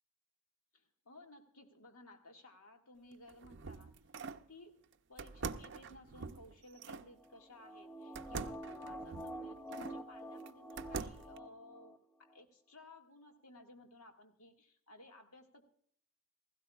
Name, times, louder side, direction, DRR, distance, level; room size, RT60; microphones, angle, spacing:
voice 1, 0.7-3.9 4.3-4.8 5.1-15.6, left 1 dB, 85° left, 3 dB, 1.9 m, -57 dB
sound 1, 3.1-4.5 5.2-7.1 8.2-10.0 10.5-11.4, right 4 dB, 55° right, 0.5 m, -45 dB
sound 2, 7.2-12.0 12.3-12.4, right 1 dB, 5° left, 0.5 m, -47 dB
17.0 x 16.0 x 2.3 m, 0.62 s
head